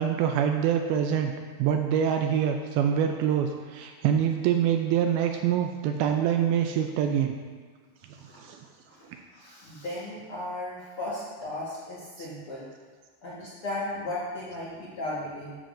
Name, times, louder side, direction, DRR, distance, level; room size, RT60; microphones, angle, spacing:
voice 1, 0.0-1.3 1.6-7.3 8.4-8.6 12.2-12.3, right 9 dB, 85° right, 4 dB, 2.2 m, -25 dB
voice 2, 8.2-8.6 8.9-9.0 9.3-12.7 13.2-15.5, left 1 dB, 75° left, -8 dB, 1.2 m, -36 dB
12.5 x 7.1 x 2.5 m, 1.5 s
omnidirectional pair, 4.7 m